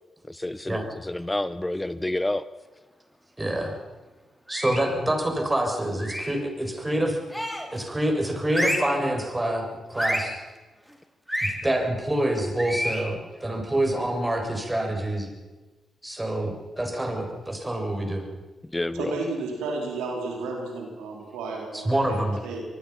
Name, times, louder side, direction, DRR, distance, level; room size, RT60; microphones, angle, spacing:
voice 1, 0.3-2.5 4.5-4.6 5.7-5.8 8.0-8.3 8.8-9.0 9.4-9.5 9.9-10.3 11.6-11.7 12.1-12.2 12.6-13.1 13.4-14.8 16.0-16.3 16.8-17.1 17.7-17.8 18.7-19.1 21.9-22.2, left 1 dB, 15° left, 15 dB, 0.8 m, -33 dB
voice 2, 3.4-3.7 4.5-7.2 7.7-10.4 11.4-15.3 16.0-16.5 16.8-18.2 21.7-22.4, right 1 dB, 20° right, 3 dB, 7.2 m, -26 dB
sound 1, 4.5-5.0 6.0-6.4 7.3-7.8 8.5-9.0 10.0-10.4 11.3-11.6 12.6-13.1, equal, ahead, 5.4 m, -29 dB
voice 3, 18.9-22.6, right 3 dB, 85° right, 1 dB, 4.2 m, -32 dB
26.5 x 20.0 x 5.9 m, 1.2 s
hypercardioid pair, 40°, 0 cm